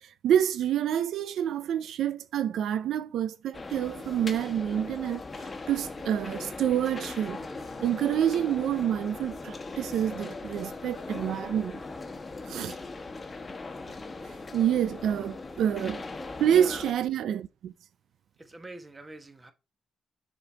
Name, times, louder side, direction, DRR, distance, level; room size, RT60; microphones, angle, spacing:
voice 1, 0.0-7.4 7.8-11.8 12.5-12.8 14.5-16.0 16.4-17.7, right 10 dB, 90° right, 0.4 m, -28 dB
sound 1, 3.5-16.9, left 3 dB, 30° left, 1.1 m, -39 dB
voice 2, 16.2-16.8 18.4-19.5, right 2 dB, 20° right, 1.3 m, -43 dB
6.7 x 4.4 x 5.0 m
cardioid pair, 105°, 0 cm